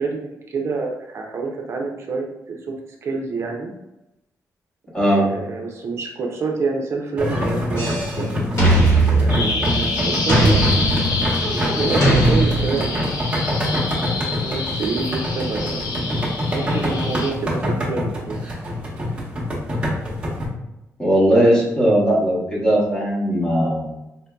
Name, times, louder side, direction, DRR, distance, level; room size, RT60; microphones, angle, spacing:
voice 1, 0.0-2.8 3.0-3.7 5.1-8.3 9.0-11.0 11.7-13.1 14.1-15.8 16.5-18.5, right 4 dB, 50° right, 1 dB, 0.4 m, -27 dB
voice 2, 4.9-5.3 21.0-23.9, right 1 dB, 15° left, -5 dB, 1.0 m, -18 dB
sound 1, 7.2-20.5, left 1 dB, 15° right, 0.9 m, -25 dB
sound 2, 7.8-8.2 8.6-9.9 10.3-11.4 12.0-13.1, right 2 dB, 55° left, 1.4 m, -19 dB
Bird vocalization bird call bird song, 9.3-17.3, left 3 dB, 90° left, 0.7 m, -28 dB
4.2 x 2.6 x 2.2 m, 0.94 s
wide cardioid pair, 145°, 6 cm